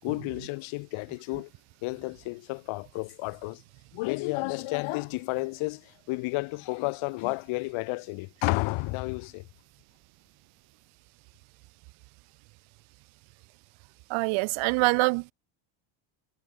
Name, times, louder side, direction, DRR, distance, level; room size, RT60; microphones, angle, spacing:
voice 1, 0.0-1.5 1.8-3.6 3.9-9.5, left 24 dB, 70° left, 4.6 m, -31 dB
voice 2, 14.1-15.3, right 27 dB, 70° right, 1.0 m, -25 dB
cardioid pair, 170°, 49 cm